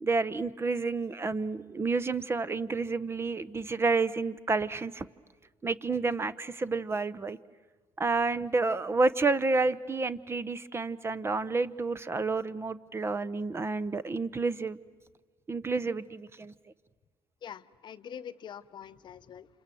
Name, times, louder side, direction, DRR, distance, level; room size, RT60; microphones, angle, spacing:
voice 1, 0.0-5.0 5.6-7.4 8.0-14.8 15.5-16.5, right 3 dB, 25° right, 17 dB, 0.7 m, -30 dB
voice 2, 17.4-19.5, left 8 dB, 50° left, 13 dB, 0.8 m, -44 dB
28.0 x 26.5 x 7.7 m, 1.5 s
cardioid pair, 95°, 10 cm